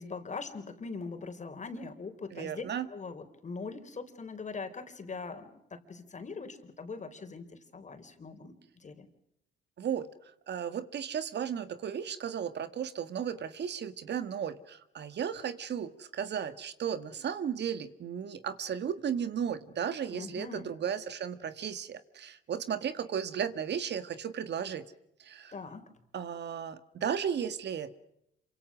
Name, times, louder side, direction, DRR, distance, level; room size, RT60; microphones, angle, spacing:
voice 1, 0.0-9.1 20.1-20.7 25.5-25.9, left 4 dB, 35° left, 7 dB, 4.2 m, -42 dB
voice 2, 2.3-2.9 9.8-10.1 10.5-24.9 25.2-25.5 26.1-28.0, right 8 dB, 60° right, 12 dB, 1.7 m, -35 dB
27.5 x 25.5 x 6.3 m, 0.80 s
cardioid pair, 90°, 20 cm